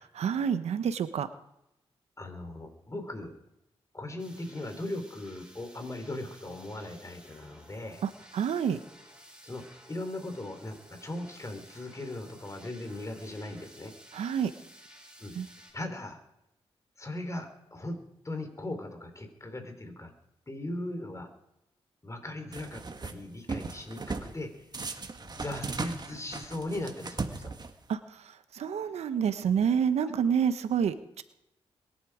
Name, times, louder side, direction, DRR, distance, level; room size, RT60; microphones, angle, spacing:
voice 1, 0.2-1.3 8.0-8.8 14.1-14.5 15.3-15.5 27.9-28.2 28.5-31.2, right 7 dB, 85° right, 11 dB, 1.1 m, -28 dB
voice 2, 2.2-3.4 3.9-8.0 9.4-13.9 15.2-15.3 15.7-16.2 17.0-18.0 18.2-20.1 20.5-21.3 22.0-24.7 25.2-27.5 30.0-30.1, left 1 dB, 30° left, 6 dB, 4.1 m, -39 dB
sound 1, 4.2-15.7, right 1 dB, 10° right, 7.8 m, -54 dB
sound 2, 22.5-23.1 23.5-24.3 24.7-27.9, right 4 dB, 40° right, 1.8 m, -37 dB
22.0 x 11.0 x 5.1 m, 0.84 s
cardioid pair, 60°, 11 cm